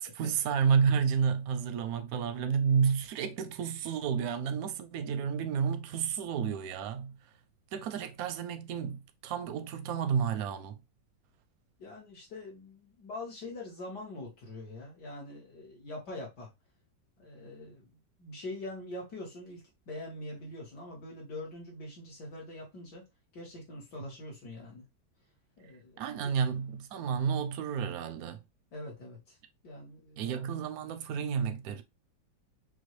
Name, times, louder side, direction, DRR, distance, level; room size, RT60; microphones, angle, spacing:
voice 1, 0.2-7.1 7.7-10.8 26.0-28.4 30.2-31.8, right 6 dB, 70° right, 0.9 m, -30 dB
voice 2, 11.8-16.5 17.2-17.9 18.2-23.0 23.3-24.8 25.6-26.0 28.7-29.4 29.6-30.3, left 2 dB, 60° left, 1.9 m, -43 dB
6.0 x 2.2 x 3.1 m
omnidirectional pair, 2.1 m